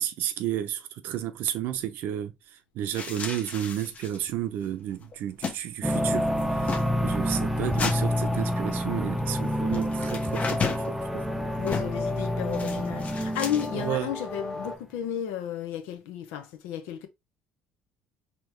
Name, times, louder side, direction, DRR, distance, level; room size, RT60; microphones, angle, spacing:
voice 1, 0.0-6.3 6.6-6.8 7.0-11.2 13.7-14.1, right 11 dB, 70° right, 0.7 m, -32 dB
sound 1, 2.9-4.3 4.6-4.7 4.9-5.6 5.8-6.0 6.4-6.9 7.8-8.0 9.7-10.9 11.7-12.0 12.5-13.8, left 5 dB, 40° left, 0.9 m, -33 dB
sound 2, 5.8-14.0, equal, 5° right, 0.7 m, -28 dB
sound 3, 5.9-14.8, left 2 dB, 15° left, 1.5 m, -37 dB
voice 2, 11.6-17.1, left 10 dB, 80° left, 0.8 m, -33 dB
4.3 x 3.0 x 3.1 m
supercardioid pair, 80°, 4 cm